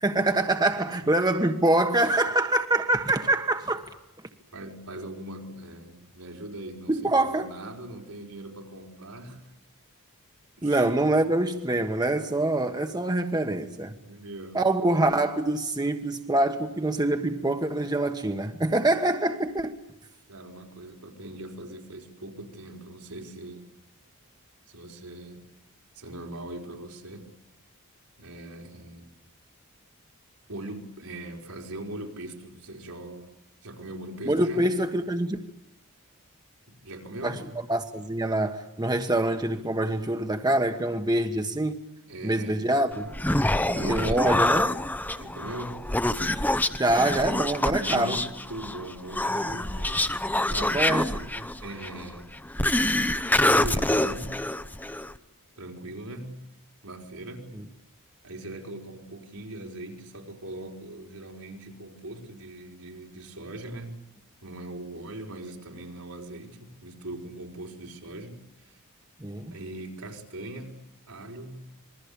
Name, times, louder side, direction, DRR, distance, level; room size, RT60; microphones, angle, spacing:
voice 1, 0.0-3.8 6.9-7.5 10.6-13.9 14.5-19.7 34.2-35.4 37.2-37.4 37.7-41.8 42.2-43.1 43.9-44.7 46.7-48.1 50.7-51.5 57.5-57.6 69.2-69.6, right 1 dB, 20° right, 1.3 m, -25 dB
voice 2, 4.5-9.5 10.6-10.8 14.1-14.6 20.3-23.7 24.7-25.4 25.9-27.3 28.2-29.1 30.5-33.3 33.6-34.7 36.7-37.5 42.1-42.6 43.4-44.4 45.2-45.8 47.6-50.1 50.5-52.3 53.3-54.4 55.6-56.4 56.8-57.5 58.2-64.0 64.4-68.7 69.5-71.7, right 1 dB, 80° right, 4.7 m, -40 dB
Human voice, 42.9-55.2, left 1 dB, 10° left, 0.9 m, -26 dB
27.0 x 21.5 x 8.6 m
head